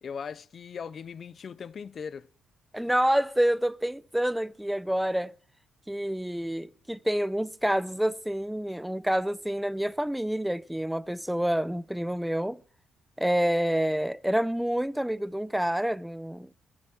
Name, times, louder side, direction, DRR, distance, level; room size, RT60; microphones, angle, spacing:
voice 1, 0.0-2.3, left 6 dB, 50° left, 0.5 m, -39 dB
voice 2, 2.7-5.3 5.9-12.6 13.2-16.5, right 1 dB, 5° right, 0.5 m, -28 dB
20.5 x 8.7 x 4.3 m
cardioid pair, 90°, 0 cm